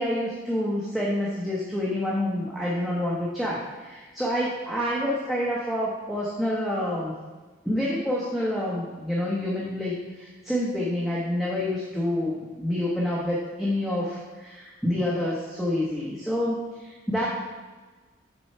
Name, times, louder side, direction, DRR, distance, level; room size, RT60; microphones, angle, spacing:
voice 1, 0.0-7.1 7.6-17.3, left 1 dB, ahead, -6 dB, 0.8 m, -28 dB
8.8 x 3.8 x 4.4 m, 1.3 s
head